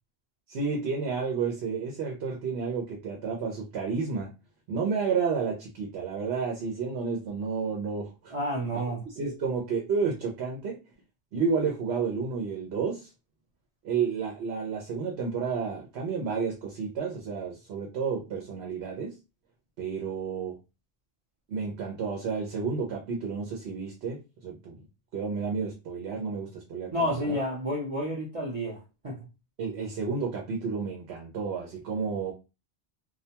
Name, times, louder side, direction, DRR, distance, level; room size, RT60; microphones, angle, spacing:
voice 1, 0.5-4.3 4.7-8.3 8.7-8.8 9.2-10.8 11.3-13.1 13.8-19.2 19.8-20.6 21.5-24.7 25.1-27.4 29.6-32.3, right 5 dB, 90° right, 0 dB, 0.9 m, -31 dB
voice 2, 8.3-9.0 26.9-29.2, equal, 40° right, -4 dB, 0.6 m, -30 dB
2.3 x 2.1 x 2.8 m, 0.27 s
omnidirectional pair, 1.1 m